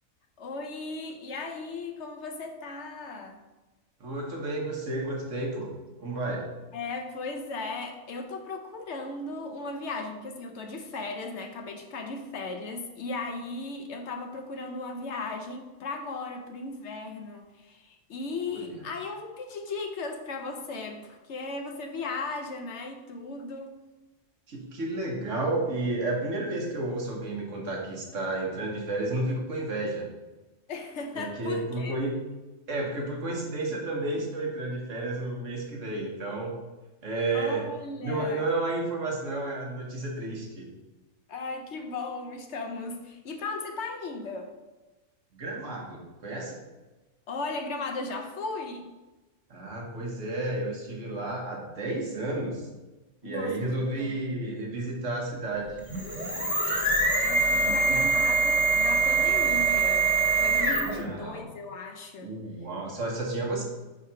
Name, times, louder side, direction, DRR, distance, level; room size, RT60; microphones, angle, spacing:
voice 1, 0.4-3.4 6.7-23.8 30.7-32.0 37.3-38.4 41.3-44.5 47.3-48.9 53.2-54.1 57.2-62.3, left 3 dB, 65° left, 3 dB, 0.9 m, -36 dB
voice 2, 4.0-5.7 6.0-6.5 18.5-18.7 24.5-30.1 31.1-32.1 32.7-36.5 37.0-37.6 38.0-40.7 45.3-46.6 49.5-52.7 53.2-55.8 57.5-58.0 60.8-61.5 62.2-63.6, right 2 dB, 70° right, -1 dB, 1.6 m, -31 dB
sound 1, 55.8-61.1, right 3 dB, 5° right, 1.4 m, -24 dB
4.8 x 3.8 x 5.6 m, 1.1 s
omnidirectional pair, 1.4 m